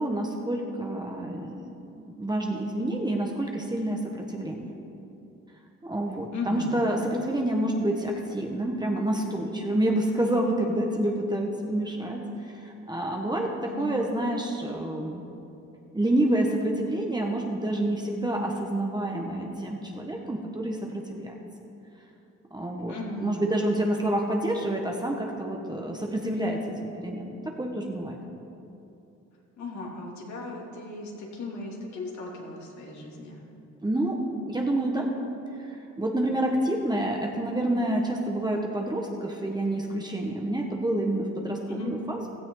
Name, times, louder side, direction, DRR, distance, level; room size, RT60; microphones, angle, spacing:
voice 1, 0.0-4.7 5.8-12.2 12.6-13.5 13.8-15.2 15.9-21.3 22.5-22.9 23.2-28.1 33.8-34.2 34.5-35.1 36.0-42.3, right 1 dB, 15° right, 0 dB, 1.5 m, -28 dB
voice 2, 6.3-6.8 13.7-13.9 22.9-23.4 29.6-33.4 41.7-41.9, left 2 dB, 65° left, -2 dB, 3.0 m, -36 dB
16.0 x 14.0 x 4.0 m, 2.8 s
cardioid pair, 90°, 30 cm